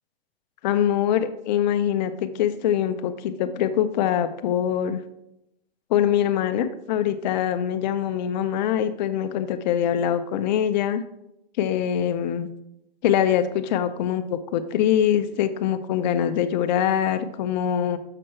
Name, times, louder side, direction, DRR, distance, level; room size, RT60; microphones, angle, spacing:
voice 1, 0.6-5.0 5.9-11.0 11.6-12.5 13.0-18.0, left 9 dB, 45° left, 11 dB, 0.6 m, -23 dB
6.8 x 6.1 x 4.4 m, 0.85 s
hypercardioid pair, 130°, 31 cm